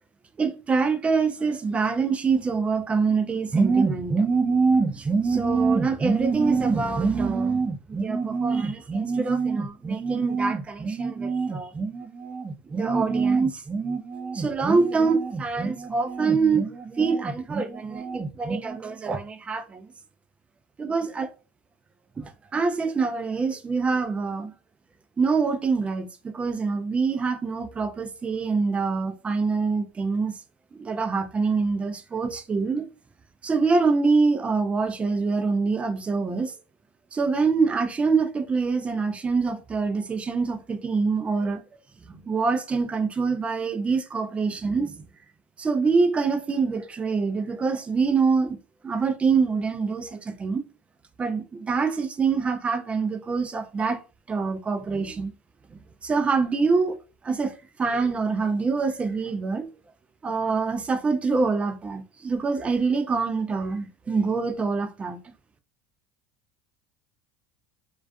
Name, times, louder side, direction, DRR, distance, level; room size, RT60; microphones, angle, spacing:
voice 1, 0.4-19.9 20.8-21.3 22.2-24.5 25.2-30.3 30.7-32.9 33.4-36.5 37.1-41.6 42.1-44.9 45.6-48.6 48.8-50.6 51.2-54.0 54.3-55.3 56.0-57.0 57.2-57.5 57.8-59.7 60.2-65.2, right 4 dB, 20° right, 0.4 m, -25 dB
2.4 x 2.3 x 2.3 m
supercardioid pair, 90°, 6 cm